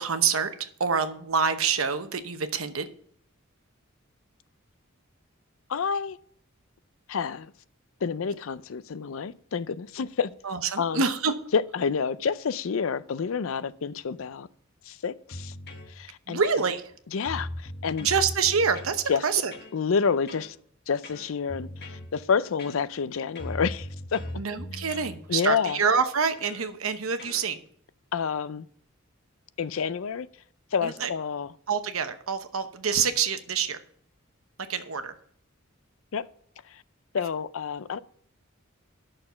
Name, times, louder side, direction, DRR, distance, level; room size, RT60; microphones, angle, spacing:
voice 1, 0.0-2.9 10.4-11.3 16.3-16.8 18.0-19.5 24.3-27.6 30.8-31.1 31.7-33.8 34.7-35.1, right 6 dB, 90° right, 0.9 m, -26 dB
voice 2, 5.7-6.2 7.1-7.5 8.0-10.3 10.8-11.0 11.5-14.5 14.9-15.5 16.0-16.4 17.1-18.1 19.1-19.2 19.7-20.6 20.9-24.2 25.3-25.8 28.1-28.7 29.6-30.3 30.7-31.5 36.1-36.2 37.1-38.0, left 6 dB, 70° left, 0.5 m, -28 dB
sound 1, 15.3-15.9 16.4-16.9 17.2-19.0 19.5-19.8 20.3-20.5 21.0-22.1 22.6-23.1 23.4-25.2 25.7-25.9 26.4-26.7 27.2-27.4, left 1 dB, 55° left, 1.2 m, -39 dB
10.5 x 6.6 x 5.7 m
head